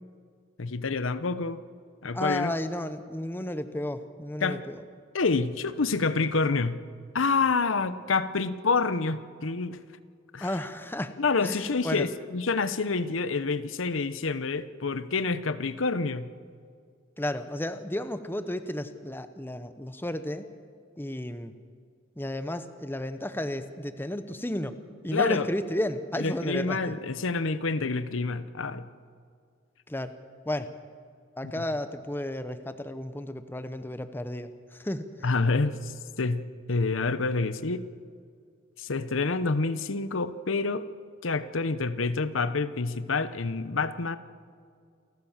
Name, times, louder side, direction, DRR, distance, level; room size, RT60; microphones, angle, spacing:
voice 1, 0.6-1.6 2.0-2.5 4.4-4.6 5.1-6.8 7.1-9.8 10.3-10.5 11.2-16.3 25.1-25.5 26.2-28.9 31.6-31.7 35.2-37.8 38.8-40.9 41.2-44.2, left 4 dB, 85° left, 13 dB, 0.9 m, -28 dB
voice 2, 2.1-4.8 10.4-11.1 11.4-12.1 17.2-20.5 21.0-21.5 22.2-24.8 25.0-27.0 29.9-30.2 30.4-30.7 31.4-35.1, left 1 dB, 10° left, 10 dB, 0.9 m, -33 dB
28.5 x 14.0 x 7.3 m, 2.2 s
head